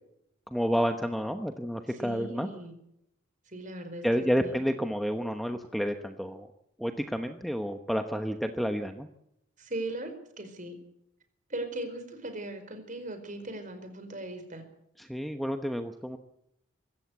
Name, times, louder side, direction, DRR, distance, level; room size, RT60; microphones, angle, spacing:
voice 1, 0.5-2.5 4.0-6.5 6.8-9.1 15.0-16.2, equal, ahead, 6 dB, 1.0 m, -30 dB
voice 2, 2.0-2.7 3.5-4.6 9.6-10.1 10.4-10.7 11.5-14.6, right 1 dB, 35° right, 7 dB, 4.7 m, -38 dB
25.0 x 14.0 x 8.2 m, 0.80 s
head